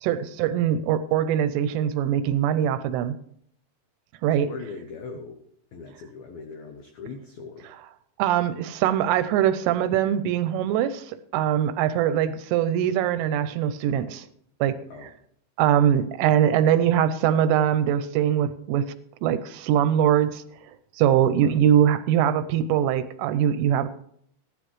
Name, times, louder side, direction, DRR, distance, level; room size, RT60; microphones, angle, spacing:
voice 1, 0.0-3.2 4.2-4.5 8.2-14.3 14.6-14.8 15.0-15.1 15.6-18.9 19.2-20.4 20.9-23.9, right 10 dB, 80° right, 12 dB, 3.0 m, -22 dB
voice 2, 4.4-5.4 5.7-7.7 14.9-15.1 21.4-21.6, left 4 dB, 85° left, 4 dB, 2.1 m, -40 dB
15.5 x 12.0 x 3.2 m, 0.67 s
omnidirectional pair, 5.9 m